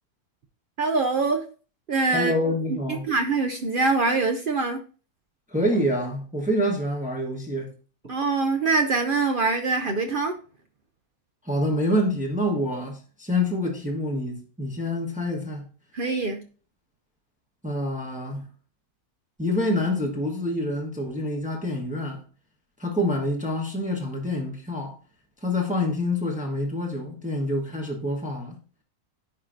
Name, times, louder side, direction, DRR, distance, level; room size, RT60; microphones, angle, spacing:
voice 1, 0.8-1.4 1.9-2.3 2.7-2.8 3.0-4.8 8.1-10.4 15.9-16.4, right 3 dB, 65° right, 0.5 m, -24 dB
voice 2, 2.1-3.1 5.5-7.7 11.4-15.6 17.6-18.5 19.4-22.2 22.8-25.0 25.4-28.6, left 1 dB, 5° right, 1.1 m, -27 dB
10.5 x 4.5 x 2.5 m
omnidirectional pair, 1.5 m